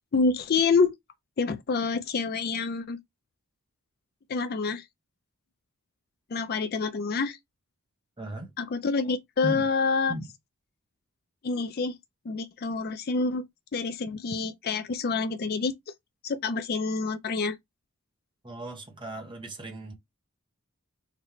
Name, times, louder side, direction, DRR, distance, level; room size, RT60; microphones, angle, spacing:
voice 1, 0.1-0.9 1.4-3.0 4.3-4.8 6.3-7.4 8.6-10.1 11.4-11.9 12.3-13.4 13.7-15.7 16.2-17.6, left 4 dB, 45° left, 0.4 m, -27 dB
voice 2, 8.2-8.5 9.4-9.7 10.1-10.3 18.4-19.9, right 1 dB, 20° right, 1.0 m, -36 dB
4.0 x 2.1 x 4.2 m
head